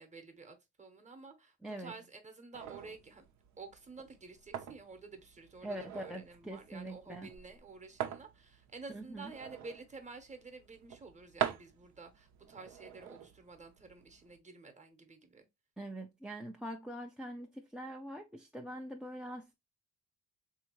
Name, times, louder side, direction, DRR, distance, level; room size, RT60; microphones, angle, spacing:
voice 1, 0.0-3.3 3.6-15.5, right 4 dB, 25° right, 0.9 m, -51 dB
voice 2, 1.6-1.9 5.6-7.3 8.9-9.3 15.8-19.5, right 1 dB, 5° right, 0.4 m, -43 dB
sound 1, 2.5-14.4, right 10 dB, 70° right, 0.7 m, -45 dB
3.5 x 2.8 x 2.9 m
cardioid pair, 90°, 30 cm